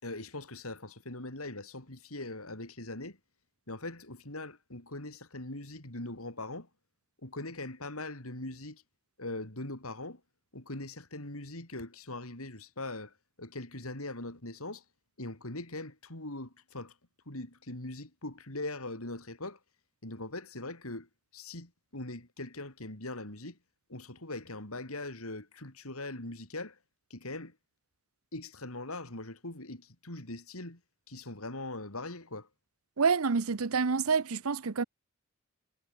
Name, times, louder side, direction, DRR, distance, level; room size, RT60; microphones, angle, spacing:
voice 1, 0.0-3.2 3.7-6.7 7.2-8.8 9.2-10.2 10.5-14.8 15.2-16.9 17.3-19.6 20.0-23.6 23.9-26.8 27.1-27.6 28.3-30.8 31.1-32.5, left 2 dB, 80° left, 5.1 m, -41 dB
voice 2, 33.0-34.8, right 5 dB, 80° right, 0.8 m, -27 dB
head